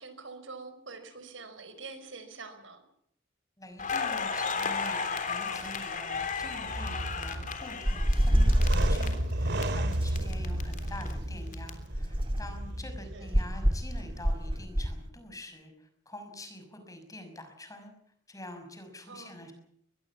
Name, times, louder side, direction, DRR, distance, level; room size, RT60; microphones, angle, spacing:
voice 1, 0.0-2.8 13.1-13.3 19.1-19.4, right 4 dB, 80° right, 10 dB, 5.1 m, -45 dB
voice 2, 3.6-17.9 18.3-19.5, left 1 dB, 20° left, 6 dB, 6.0 m, -46 dB
Crackle, 3.8-9.6 9.9-11.7, left 5 dB, 45° left, 3.5 m, -34 dB
sound 1, 6.1-14.6, right 1 dB, 60° right, 2.5 m, -34 dB
sound 2, 7.8-9.1 10.0-11.3 11.9-12.6 13.3-15.0, equal, 30° right, 2.3 m, -27 dB
23.0 x 21.0 x 7.2 m, 0.70 s
head